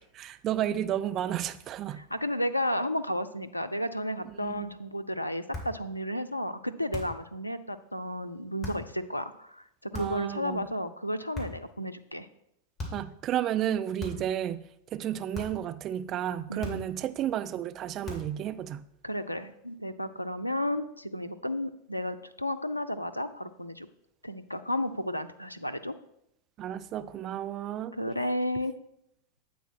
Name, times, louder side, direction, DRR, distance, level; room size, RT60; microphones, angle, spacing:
voice 1, 0.0-2.0 4.3-4.7 9.9-10.6 12.9-14.6 14.9-18.8 26.6-28.0, right 11 dB, 35° right, 11 dB, 0.4 m, -32 dB
voice 2, 2.0-12.3 14.1-14.2 16.5-16.8 19.0-23.9 24.2-25.9 28.0-28.7, left 1 dB, 90° left, 10 dB, 0.4 m, -33 dB
sound 1, 5.5-5.8 6.9-7.3 8.6-8.9 9.9-10.3 11.3-11.7 12.8-13.1 14.0-14.4 15.3-15.7 16.6-17.0 18.0-18.4, left 2 dB, 10° left, 2.4 m, -39 dB
8.4 x 4.1 x 5.8 m, 0.77 s
figure-of-eight pair, 90°, 0 cm